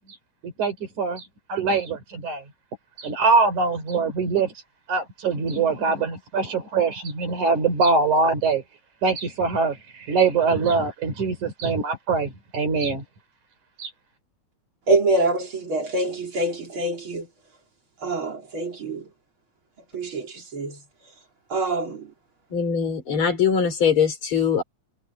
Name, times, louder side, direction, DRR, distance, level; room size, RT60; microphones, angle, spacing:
voice 1, 0.4-2.4 3.0-4.6 4.9-8.6 9.0-13.0 13.8-13.9, right 4 dB, 90° right, 5.8 m, -23 dB
voice 2, 14.9-17.3 18.0-19.0 19.9-20.8 21.5-22.1, right 2 dB, 45° right, 4.2 m, -25 dB
voice 3, 22.5-24.6, left 7 dB, 45° left, 4.3 m, -22 dB
omnidirectional pair, 3.3 m